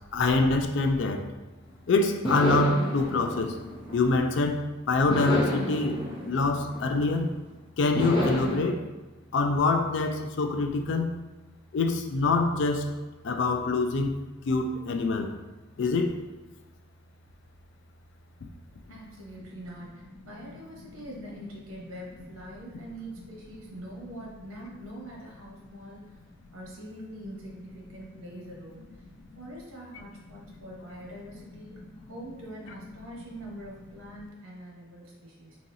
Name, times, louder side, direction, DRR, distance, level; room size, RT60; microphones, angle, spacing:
voice 1, 0.1-1.2 1.9-3.6 3.9-6.0 6.2-7.3 7.8-8.9 9.3-11.1 11.7-12.9 13.2-14.2 14.5-15.3 15.8-16.1, left 3 dB, 60° left, 5 dB, 0.3 m, -25 dB
sound 1, 1.6-1.7 2.2-4.5 5.1-7.4 8.0-8.6, equal, 20° left, 0.7 m, -30 dB
voice 2, 18.9-26.0 26.5-29.0 29.4-35.6, right 1 dB, 90° right, -3 dB, 1.0 m, -44 dB
4.0 x 2.9 x 2.6 m, 1.2 s
head